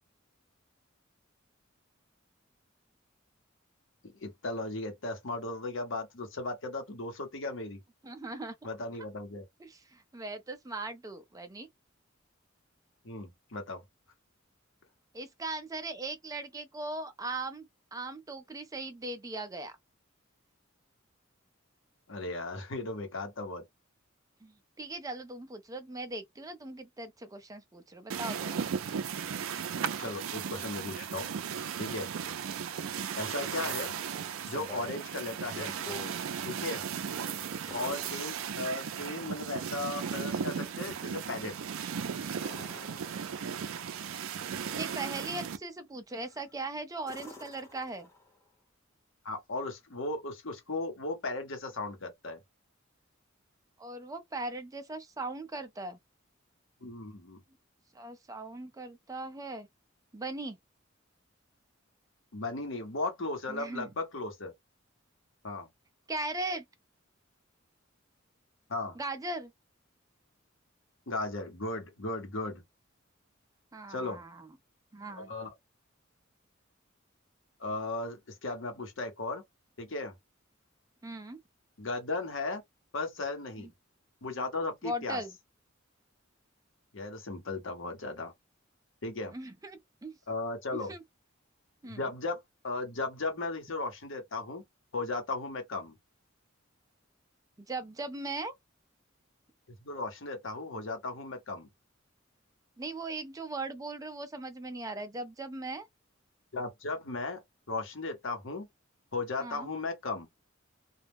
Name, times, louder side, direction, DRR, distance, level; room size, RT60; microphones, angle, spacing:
voice 1, 4.2-7.8 8.6-9.4 13.0-13.8 22.1-23.6 30.0-31.3 31.8-32.1 33.2-34.0 34.5-35.7 36.4-36.8 37.7-41.5 49.2-52.4 56.8-57.4 62.3-64.5 65.4-65.7 68.7-69.0 71.1-72.6 73.9-74.2 75.2-75.5 77.6-79.4 79.8-80.1 81.8-82.6 82.9-83.7 84.2-85.2 86.9-88.3 89.0-89.3 90.3-90.9 91.8-92.4 92.6-94.6 94.9-96.0 99.8-101.7 106.5-107.4 107.7-108.7 109.1-110.3, left 2 dB, 70° left, 0.9 m, -36 dB
voice 2, 8.0-8.5 9.6-11.7 15.1-19.8 24.4-28.6 44.7-48.1 53.8-56.0 57.9-59.7 60.1-60.6 63.5-63.9 66.1-66.6 69.0-69.5 73.7-74.5 74.9-75.3 81.0-81.4 83.6-83.7 84.8-85.3 89.3-90.1 90.7-91.0 91.8-92.0 97.7-98.5 102.8-105.9 109.4-109.7, right 2 dB, 15° right, 0.4 m, -39 dB
sound 1, 28.1-45.6, right 7 dB, 85° right, 0.4 m, -36 dB
sound 2, 33.4-34.0 34.4-35.1 35.4-36.2 37.7-38.9 42.3-43.7 46.1-46.5 47.0-48.4 50.5-50.6, left 2 dB, 15° left, 0.8 m, -48 dB
2.3 x 2.0 x 3.3 m
head